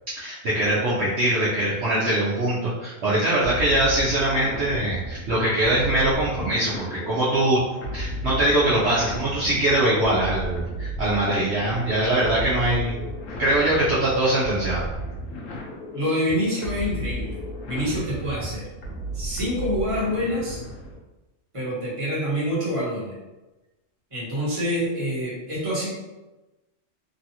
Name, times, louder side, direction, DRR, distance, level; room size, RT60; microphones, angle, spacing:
voice 1, 0.2-7.6 7.9-13.0 13.4-14.8, right 1 dB, 65° right, -8 dB, 0.9 m, -22 dB
sound 1, 3.4-21.0, equal, 85° left, 1.0 m, -34 dB
voice 2, 15.9-17.4 17.7-18.7 19.1-20.6 21.5-23.2 24.1-25.9, equal, 25° right, -8 dB, 1.3 m, -26 dB
3.1 x 2.4 x 2.8 m, 1.1 s
omnidirectional pair, 1.3 m